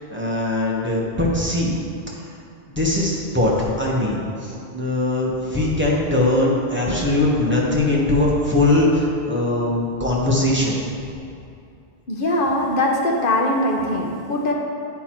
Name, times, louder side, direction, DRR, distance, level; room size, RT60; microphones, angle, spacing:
voice 1, 0.1-1.8 2.7-10.8, left 2 dB, 10° right, -5 dB, 1.2 m, -21 dB
voice 2, 12.1-14.5, left 1 dB, 55° left, 0 dB, 1.1 m, -21 dB
9.5 x 4.4 x 4.4 m, 2.6 s
omnidirectional pair, 1.1 m